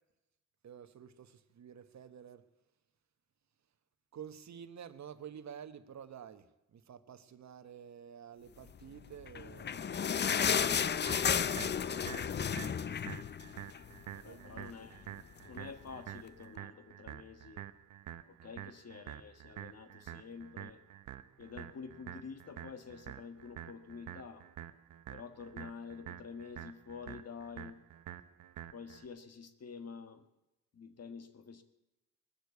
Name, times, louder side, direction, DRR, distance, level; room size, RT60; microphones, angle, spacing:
voice 1, 0.6-2.4 4.1-12.1 14.2-14.6, right 8 dB, 60° right, 12 dB, 1.1 m, -51 dB
sound 1, 9.2-14.0 14.3-14.4 14.7-14.9 15.5-15.6, left 7 dB, 35° left, 0.5 m, -32 dB
sound 2, 11.1-29.1, right 11 dB, 75° right, 0.7 m, -48 dB
voice 2, 14.1-15.1 15.4-17.7 18.2-20.8 21.4-24.4 25.1-27.8 28.7-30.3 30.7-31.6, left 5 dB, 55° left, 9 dB, 1.6 m, -48 dB
20.0 x 6.7 x 8.3 m, 0.97 s
cardioid pair, 60°, 31 cm